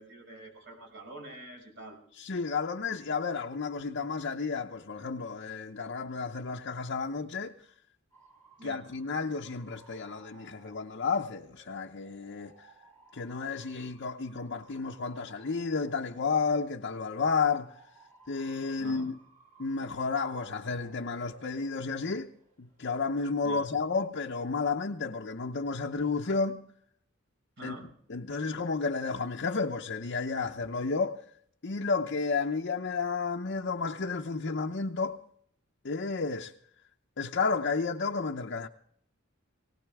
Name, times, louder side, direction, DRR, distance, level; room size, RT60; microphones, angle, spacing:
voice 1, 0.0-2.0 8.6-8.8 18.8-19.1 23.4-23.7 27.6-27.9, right 1 dB, 60° right, 6.4 m, -46 dB
voice 2, 2.2-7.5 8.6-12.5 13.1-17.7 18.3-19.2 19.6-22.3 22.6-26.6 27.6-27.7 28.1-31.2 31.6-35.2 35.8-36.5 37.2-38.7, left 4 dB, 60° left, 0.8 m, -32 dB
Bark / Motor vehicle (road) / Siren, 8.1-24.4, right 3 dB, 40° right, 4.6 m, -59 dB
20.0 x 18.5 x 3.6 m
head